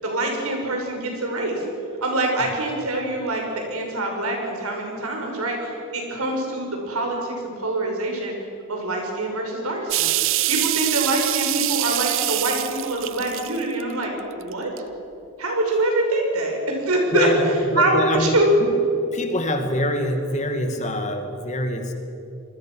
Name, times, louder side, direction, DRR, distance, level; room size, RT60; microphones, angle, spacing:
voice 1, 0.0-1.6 2.0-8.3 8.7-10.1 10.5-14.7 15.4-17.3 17.8-18.5, right 2 dB, 90° right, 1 dB, 6.2 m, -25 dB
sound 1, 9.9-14.0 14.5-14.8, right 16 dB, 65° right, 0.6 m, -24 dB
voice 2, 17.1-18.7 19.1-21.9, left 1 dB, 35° left, 5 dB, 2.4 m, -25 dB
27.0 x 20.5 x 6.5 m, 2.8 s
head